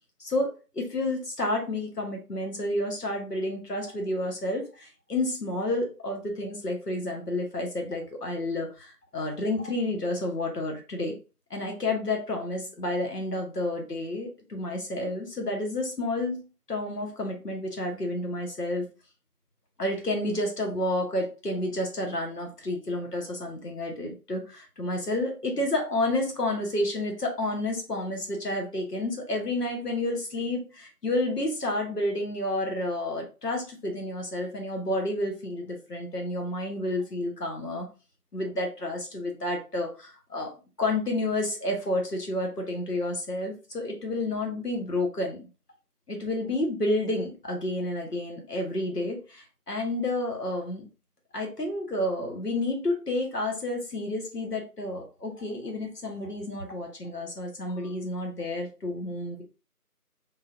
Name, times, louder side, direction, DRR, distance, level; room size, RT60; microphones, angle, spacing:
voice 1, 0.2-11.2 11.5-18.8 19.8-37.9 38.3-40.5 40.8-45.5 46.1-50.9 51.3-59.4, left 1 dB, 80° left, 2 dB, 1.2 m, -30 dB
3.7 x 2.7 x 2.3 m, 0.32 s
figure-of-eight pair, 175°, 47 cm